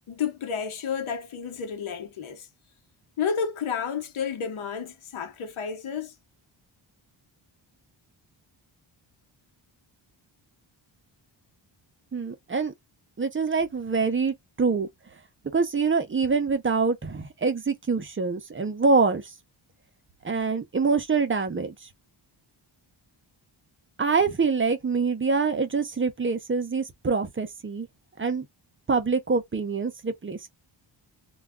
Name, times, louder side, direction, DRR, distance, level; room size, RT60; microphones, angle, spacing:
voice 1, 0.1-2.5 3.2-6.1, left 7 dB, 90° left, 0.9 m, -31 dB
voice 2, 12.1-12.7 13.2-14.9 15.5-19.2 20.2-21.7 24.0-27.9 28.2-28.5 28.9-30.5, right 4 dB, 25° right, 0.5 m, -25 dB
2.3 x 2.2 x 3.5 m
wide cardioid pair, 155°, 47 cm